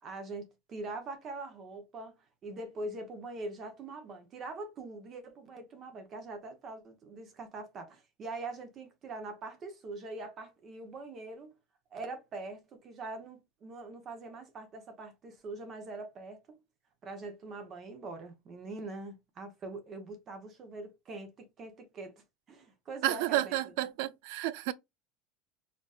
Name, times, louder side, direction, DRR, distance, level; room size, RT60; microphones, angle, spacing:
voice 1, 0.0-11.6 11.9-16.6 17.0-23.7, right 2 dB, 25° right, 0.8 m, -43 dB
voice 2, 23.0-24.7, right 14 dB, 65° right, 0.4 m, -31 dB
4.5 x 2.5 x 2.3 m
cardioid pair, 175°, 0 cm